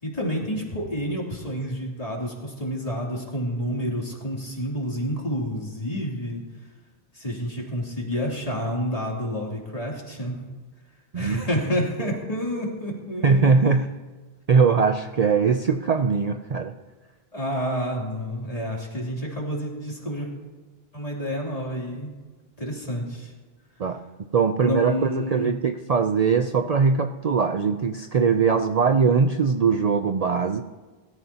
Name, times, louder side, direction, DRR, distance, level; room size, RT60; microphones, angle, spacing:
voice 1, 0.0-6.4 7.1-10.4 11.1-13.5 17.3-20.3 20.9-22.1 22.6-23.3 24.6-25.5, equal, 35° left, -3 dB, 3.1 m, -29 dB
voice 2, 13.2-13.9 14.5-16.7 23.8-24.0 24.3-30.6, right 5 dB, 45° right, 7 dB, 0.6 m, -21 dB
22.5 x 13.5 x 2.9 m, 1.3 s
omnidirectional pair, 1.1 m